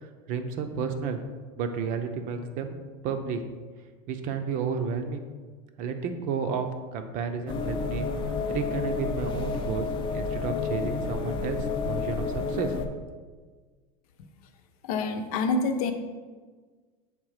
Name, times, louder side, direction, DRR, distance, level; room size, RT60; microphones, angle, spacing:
voice 1, 0.0-1.2 1.6-2.8 3.0-3.4 4.1-5.3 5.8-6.7 6.9-8.1 8.5-12.7, right 6 dB, 45° right, 7 dB, 0.6 m, -32 dB
sound 1, 7.5-12.9, left 4 dB, 25° left, 0.5 m, -30 dB
voice 2, 14.8-15.9, left 3 dB, 75° left, 7 dB, 0.7 m, -27 dB
7.4 x 3.5 x 4.9 m, 1.4 s
supercardioid pair, 150°, 19 cm